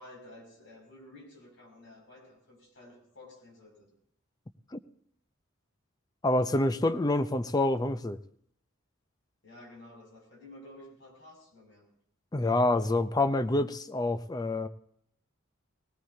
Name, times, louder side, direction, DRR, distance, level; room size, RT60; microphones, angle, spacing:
voice 1, 0.0-3.9 9.4-11.9, left 1 dB, 60° left, 0 dB, 6.0 m, -52 dB
voice 2, 6.2-8.2 12.3-14.7, left 2 dB, 20° left, 12 dB, 0.5 m, -27 dB
19.0 x 17.5 x 2.7 m, 0.66 s
head